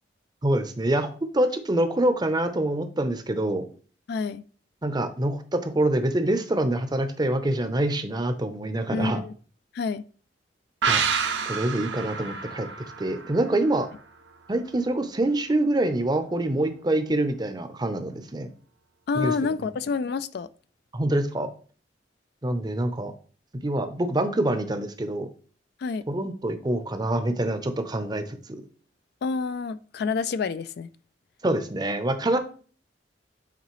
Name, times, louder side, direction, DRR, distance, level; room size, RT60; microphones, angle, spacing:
voice 1, 0.4-3.6 4.8-9.2 10.9-11.0 11.5-12.7 13.0-13.9 14.5-18.5 19.2-19.3 20.9-21.5 22.4-23.1 23.6-25.3 26.1-28.4 31.4-32.4, right 1 dB, 25° right, 0.6 m, -25 dB
voice 2, 4.1-4.4 8.9-9.3 9.7-10.0 19.1-20.5 25.8-26.0 29.2-30.9, left 4 dB, 60° left, 0.3 m, -28 dB
sound 1, 10.8-14.3 14.6-14.7, right 6 dB, 70° right, 0.8 m, -29 dB
8.2 x 3.9 x 3.1 m
head